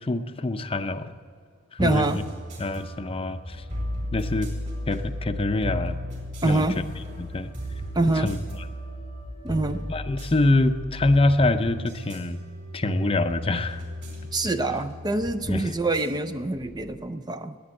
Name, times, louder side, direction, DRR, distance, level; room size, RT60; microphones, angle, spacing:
voice 1, 0.0-1.1 1.7-2.1 2.6-3.6 4.1-4.5 4.9-6.0 6.4-6.7 7.2-7.5 8.2-8.4 9.9-12.4 12.7-13.8 15.5-15.7, left 2 dB, 25° left, 9 dB, 0.6 m, -25 dB
voice 2, 1.8-2.2 6.4-6.8 7.9-8.4 9.4-9.9 14.3-17.6, right 2 dB, 20° right, 9 dB, 0.4 m, -25 dB
sound 1, 1.8-17.0, equal, 35° right, 4.5 m, -35 dB
20.5 x 8.6 x 7.8 m, 2.2 s
head